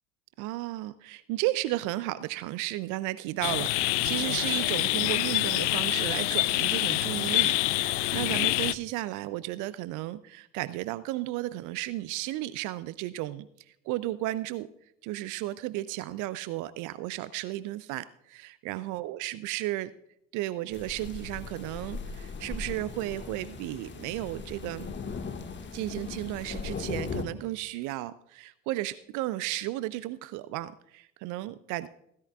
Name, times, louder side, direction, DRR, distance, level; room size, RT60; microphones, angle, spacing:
voice 1, 0.4-13.5 13.8-14.7 15.0-19.9 20.3-24.9 25.7-31.9, right 16 dB, 50° right, 16 dB, 0.6 m, -34 dB
sound 1, 3.4-8.7, left 18 dB, 65° left, 0.6 m, -26 dB
sound 2, 20.7-27.2, left 5 dB, 30° left, 1.7 m, -38 dB
16.5 x 15.0 x 2.4 m, 0.77 s
figure-of-eight pair, 60°, 39 cm